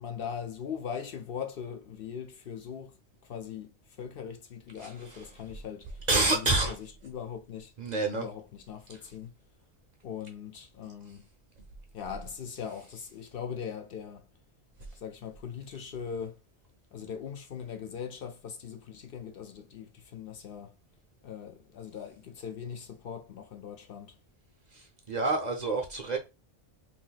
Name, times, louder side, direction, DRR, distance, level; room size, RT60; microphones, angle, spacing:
voice 1, 0.0-3.0 3.2-6.0 6.3-7.7 8.1-9.3 10.0-11.2 11.9-14.3 15.0-16.4 16.9-20.8 21.2-24.2, left 7 dB, 60° left, 0.7 m, -40 dB
voice 2, 4.8-5.2 6.1-6.8 7.8-8.3 10.8-10.9 24.7-26.2, right 3 dB, 45° right, 0.6 m, -28 dB
2.8 x 2.5 x 3.9 m
omnidirectional pair, 1.1 m